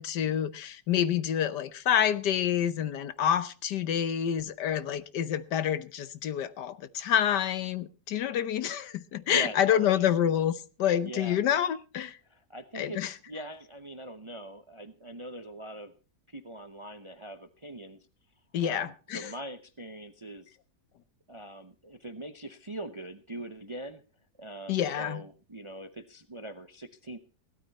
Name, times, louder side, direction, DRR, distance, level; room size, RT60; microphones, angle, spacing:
voice 1, 0.0-10.5 10.8-12.2 12.7-13.1 18.5-19.3 24.7-25.2, left 9 dB, 75° left, 1.5 m, -28 dB
voice 2, 9.1-10.0 11.0-11.4 12.2-15.9 16.3-18.1 18.6-20.6 21.3-24.0 24.4-27.2, right 1 dB, 30° right, 0.5 m, -42 dB
16.5 x 13.0 x 4.1 m
omnidirectional pair, 1.8 m